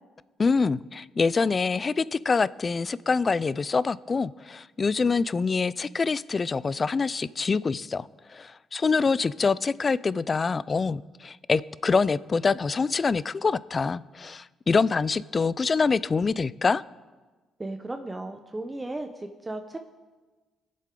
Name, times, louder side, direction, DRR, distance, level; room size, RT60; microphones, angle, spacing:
voice 1, 0.4-16.8, left 4 dB, 35° left, 19 dB, 0.3 m, -25 dB
voice 2, 17.6-19.8, right 2 dB, 20° right, 5 dB, 0.8 m, -35 dB
21.0 x 7.5 x 3.8 m, 1.3 s
cardioid pair, 90°, 0 cm